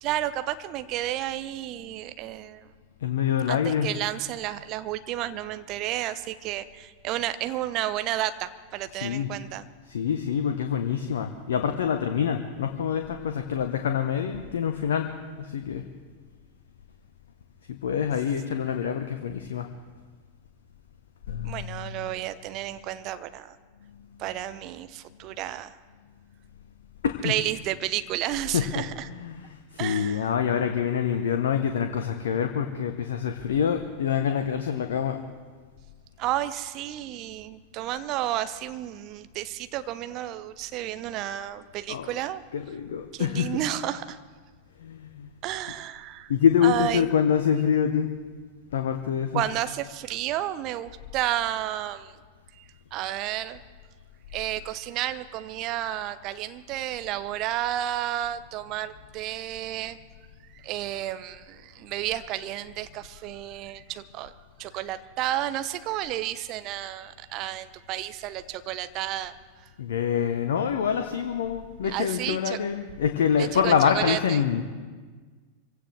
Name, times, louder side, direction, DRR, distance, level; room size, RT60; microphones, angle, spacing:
voice 1, 0.0-2.7 3.5-9.6 21.4-23.6 24.2-25.8 27.2-29.1 29.8-30.3 36.2-42.4 43.1-44.2 45.4-46.3 46.6-47.1 49.3-52.2 52.6-52.7 52.9-53.6 54.3-60.0 60.5-64.3 64.6-69.7 71.8-72.6 73.4-74.4, right 13 dB, 40° right, 12 dB, 0.8 m, -31 dB
voice 2, 3.0-3.9 8.9-9.3 9.9-15.1 15.4-15.8 17.7-19.7 21.3-22.0 27.0-27.3 28.5-35.2 41.9-42.1 42.5-43.6 44.8-45.4 46.3-48.1 48.7-49.4 69.8-74.6, left 8 dB, 60° left, 6 dB, 0.9 m, -26 dB
25.0 x 16.5 x 3.3 m, 1.5 s
figure-of-eight pair, 90°, 0 cm